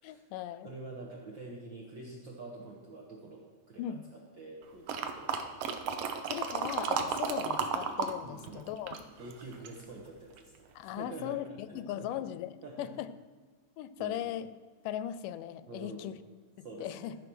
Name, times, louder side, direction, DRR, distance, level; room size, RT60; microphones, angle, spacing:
voice 1, 0.0-0.7 3.8-4.0 6.3-9.0 10.8-13.1 13.8-14.5 14.8-16.1 16.6-17.2, left 11 dB, 85° left, 14 dB, 2.1 m, -38 dB
voice 2, 0.6-3.4 3.7-5.6 7.1-7.2 8.2-8.7 9.2-12.1 12.6-12.9 14.0-14.2 15.7-16.1 16.6-17.2, right 3 dB, 55° right, -2 dB, 1.3 m, -47 dB
sound 1, 4.9-8.1 8.4-9.8 10.4-10.5, right 6 dB, 80° right, 1.4 m, -33 dB
13.5 x 5.1 x 6.1 m, 1.4 s
omnidirectional pair, 3.7 m